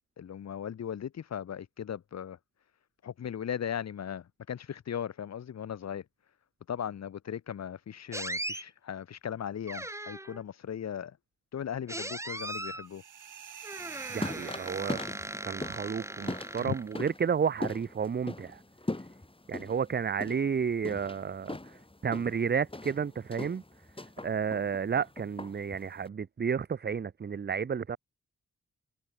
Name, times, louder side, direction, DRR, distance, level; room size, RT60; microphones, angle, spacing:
voice 1, 0.2-2.4 3.0-6.0 6.7-11.2 11.5-13.0 16.6-16.7, left 9 dB, 60° left, 0.9 m, -37 dB
sound 1, 8.1-8.6 9.7-10.4 11.9-12.9 13.6-17.1, right 1 dB, 10° right, 1.4 m, -39 dB
sound 2, 12.8-15.6, right 9 dB, 85° right, 3.0 m, -47 dB
sound 3, 13.8-26.1, left 2 dB, 15° left, 6.0 m, -41 dB
voice 2, 14.1-15.0 15.4-18.6 19.5-23.6 24.2-28.0, right 6 dB, 35° right, 0.6 m, -31 dB
cardioid pair, 75°, 30 cm